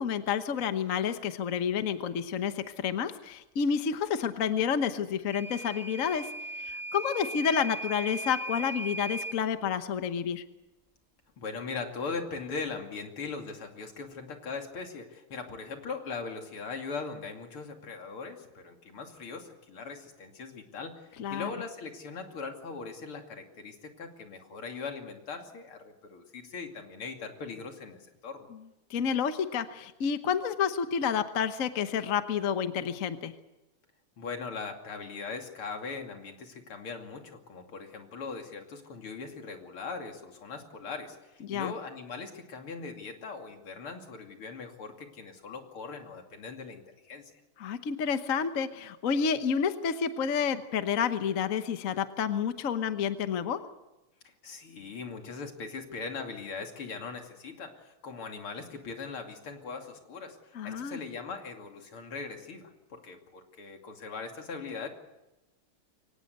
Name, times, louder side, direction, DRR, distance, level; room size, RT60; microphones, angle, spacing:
voice 1, 0.0-6.3 6.6-10.4 21.2-21.5 28.9-33.3 41.4-41.7 47.6-53.6 60.5-61.0, left 7 dB, 45° left, 10 dB, 1.2 m, -29 dB
Microwave oven / Alarm, 5.3-9.4, right 2 dB, 15° right, 0.7 m, -38 dB
voice 2, 11.4-28.5 34.2-47.3 54.4-64.9, left 4 dB, 75° left, 4 dB, 3.5 m, -40 dB
23.5 x 19.0 x 8.1 m, 0.98 s
omnidirectional pair, 2.4 m